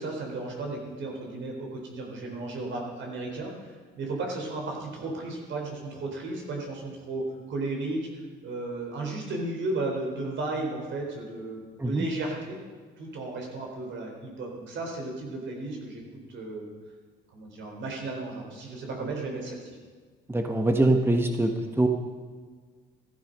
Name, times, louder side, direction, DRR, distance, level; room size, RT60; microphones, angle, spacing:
voice 1, 0.0-8.1 8.4-12.6 13.0-16.0 16.3-16.7 17.3-19.6, right 2 dB, 70° right, 0 dB, 4.1 m, -34 dB
voice 2, 20.3-21.9, right 1 dB, 10° right, 4 dB, 1.3 m, -23 dB
14.5 x 13.0 x 5.4 m, 1.5 s
cardioid pair, 90°, 20 cm